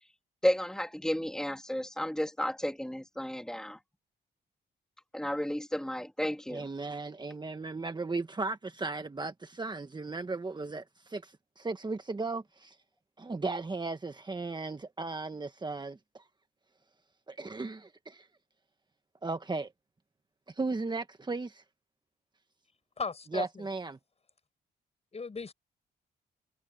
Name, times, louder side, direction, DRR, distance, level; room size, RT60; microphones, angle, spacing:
voice 1, 0.4-3.8 5.1-6.7, equal, 5° left, 2.9 m, -32 dB
voice 2, 6.5-12.8 13.2-16.2 17.3-18.3 19.2-19.7 20.6-21.6 23.3-24.0, right 3 dB, 25° right, 1.5 m, -36 dB
voice 3, 23.0-23.7 25.1-25.5, left 4 dB, 35° left, 7.5 m, -36 dB
cardioid pair, 80°, 18 cm